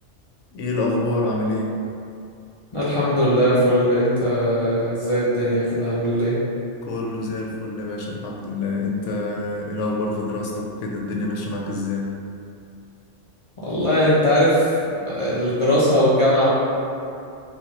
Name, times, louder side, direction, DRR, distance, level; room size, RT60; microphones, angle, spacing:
voice 1, 0.5-1.8 6.8-12.1, left 2 dB, 75° left, -1 dB, 0.9 m, -26 dB
voice 2, 2.7-6.4 13.6-14.7 15.0-16.5, equal, 45° left, -10 dB, 0.4 m, -19 dB
4.1 x 2.3 x 2.9 m, 2.6 s
omnidirectional pair, 1.3 m